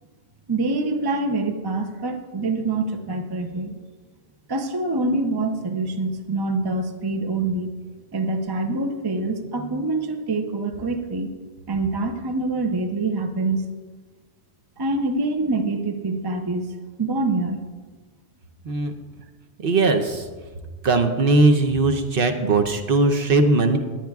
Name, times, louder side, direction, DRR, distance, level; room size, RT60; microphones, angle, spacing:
voice 1, 0.5-3.8 4.5-7.7 8.1-11.3 11.7-13.6 14.8-16.7 17.0-17.6, right 2 dB, 25° right, 6 dB, 0.6 m, -25 dB
voice 2, 19.6-20.3 20.8-23.8, right 3 dB, 60° right, 5 dB, 1.0 m, -19 dB
20.5 x 9.0 x 2.4 m, 1.4 s
omnidirectional pair, 1.1 m